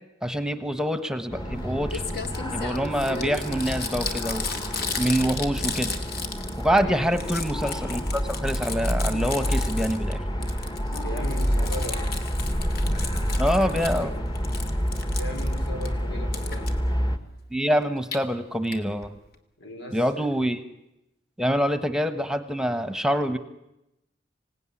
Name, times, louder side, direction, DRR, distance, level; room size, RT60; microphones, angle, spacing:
voice 1, 0.2-2.0 2.5-4.5 5.0-5.9 6.6-10.2 13.4-14.1 17.5-19.1 19.9-20.6 21.4-23.4, equal, 5° right, 10 dB, 1.1 m, -25 dB
sound 1, 1.3-17.2, equal, 25° left, 1.6 m, -28 dB
Crumpling crinkling, 1.6-1.7 1.9-6.8 7.1-10.1 10.4-14.0 14.4-15.9 16.3-16.7 17.8-18.2 18.7-18.8 19.0-19.1 19.3-19.4, left 5 dB, 60° left, 2.3 m, -35 dB
voice 2, 6.8-7.1 11.0-12.1 13.6-14.2 15.1-16.7 19.6-20.3, left 1 dB, 90° left, 4 dB, 5.0 m, -38 dB
26.0 x 17.5 x 9.9 m, 0.92 s
head